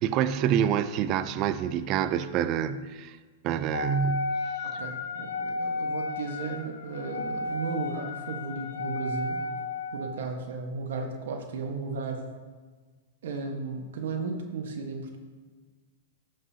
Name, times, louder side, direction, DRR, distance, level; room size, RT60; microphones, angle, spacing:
voice 1, 0.0-3.2 3.4-4.4, right 9 dB, 35° right, 0.4 m, -27 dB
Wind instrument woodwind instrument, 3.7-10.2, left 3 dB, 80° left, 0.7 m, -33 dB
voice 2, 4.6-9.4 9.9-12.3 13.2-15.2, right 4 dB, 75° right, 1.3 m, -35 dB
13.0 x 5.3 x 2.8 m
hypercardioid pair, 140°, 0 cm